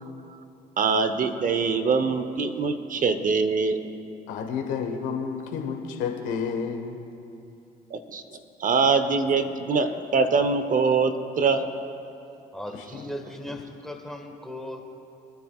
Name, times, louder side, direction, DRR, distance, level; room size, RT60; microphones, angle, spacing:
voice 1, 0.8-3.8 7.9-8.2 8.6-11.6, right 4 dB, 45° right, 10 dB, 0.8 m, -23 dB
voice 2, 4.3-7.0 12.7-13.0, left 6 dB, 85° left, 3 dB, 1.4 m, -30 dB
voice 3, 12.5-14.9, left 1 dB, ahead, 2 dB, 1.6 m, -37 dB
24.0 x 9.5 x 2.4 m, 2.8 s
supercardioid pair, 75°, 19 cm